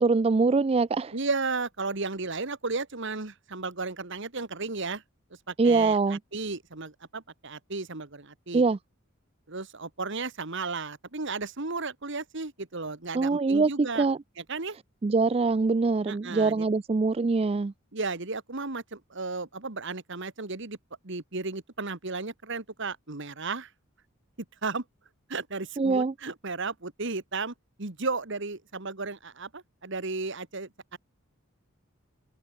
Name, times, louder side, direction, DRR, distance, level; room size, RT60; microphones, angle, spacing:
voice 1, 0.0-1.1 5.6-6.2 8.5-8.8 13.1-14.2 15.0-17.7 25.8-26.1, right 4 dB, 30° right, 0.4 m, -23 dB
voice 2, 1.1-5.0 5.5-8.6 9.5-14.1 14.4-14.8 16.1-16.7 17.9-20.8 21.0-23.7 24.6-24.8 25.3-31.0, right 3 dB, 60° right, 1.8 m, -34 dB
head